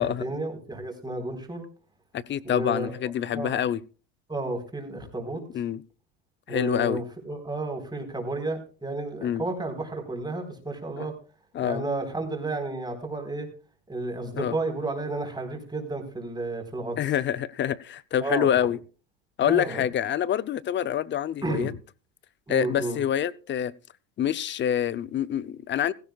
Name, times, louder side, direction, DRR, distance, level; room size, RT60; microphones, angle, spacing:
voice 1, 0.0-1.7 2.4-2.9 3.3-3.6 4.3-5.4 6.5-11.1 11.6-13.5 13.9-17.0 18.2-18.5 19.4-19.8 21.4-21.7 22.5-23.0, right 2 dB, 10° right, 4.2 m, -32 dB
voice 2, 2.1-3.8 5.5-5.8 6.5-7.0 9.2-9.4 11.0-11.1 11.5-11.9 14.3-14.5 17.0-18.8 19.4-21.7 22.5-23.7 24.2-25.9, left 10 dB, 30° left, 0.6 m, -26 dB
17.0 x 15.5 x 2.4 m
supercardioid pair, 105°, 39 cm